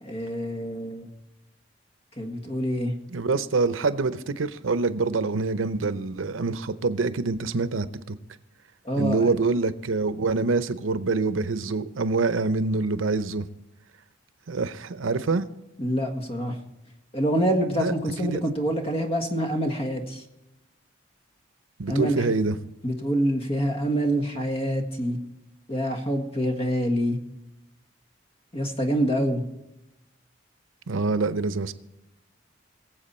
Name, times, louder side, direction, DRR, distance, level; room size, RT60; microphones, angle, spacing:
voice 1, 0.0-1.1 2.2-2.9 8.9-9.3 15.8-16.6 17.1-20.2 21.9-22.3 22.8-25.2 25.7-27.2 28.5-29.4, equal, 30° left, 1.6 m, -26 dB
voice 2, 3.1-8.1 9.0-13.5 14.5-15.4 17.8-17.9 18.2-18.4 21.8-22.6 30.9-31.7, right 3 dB, 90° right, 0.7 m, -25 dB
22.5 x 7.6 x 4.3 m
head